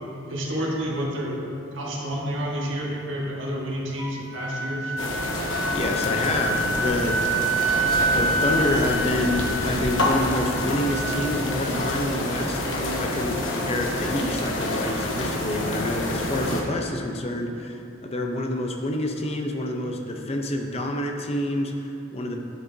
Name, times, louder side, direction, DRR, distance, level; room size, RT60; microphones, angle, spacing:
voice 1, 0.3-1.4 1.7-5.0, equal, 70° right, -3 dB, 1.4 m, -29 dB
Wind instrument woodwind instrument, 4.0-11.7, right 3 dB, ahead, 1.2 m, -28 dB
sound 1, 5.0-16.6, left 1 dB, 75° left, 1.0 m, -27 dB
voice 2, 5.7-7.2 7.8-22.4, left 1 dB, 30° left, 3 dB, 0.6 m, -28 dB
10.0 x 7.3 x 2.8 m, 2.9 s
head